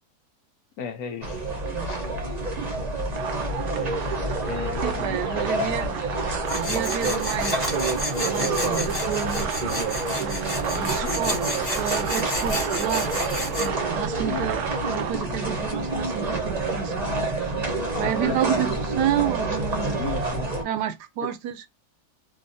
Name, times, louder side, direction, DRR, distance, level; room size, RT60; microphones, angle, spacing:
voice 1, 0.8-2.0 4.5-5.4 10.7-11.5 14.3-14.5 17.9-18.7 20.0-20.5 21.2-21.3, left 6 dB, 70° left, 1.1 m, -36 dB
sound 1, 1.2-20.6, right 2 dB, 35° right, 0.7 m, -28 dB
voice 2, 1.7-2.1 2.4-2.7 4.8-5.9 6.5-7.7 8.2-9.6 10.2-11.5 11.8-13.1 13.6-17.1 18.0-20.0 20.6-21.6, right 10 dB, 85° right, 1.2 m, -30 dB
sound 2, 3.1-15.1, right 8 dB, 70° right, 0.8 m, -34 dB
Tools, 6.5-13.7, left 1 dB, 20° left, 0.9 m, -31 dB
2.6 x 2.6 x 2.6 m
omnidirectional pair, 1.7 m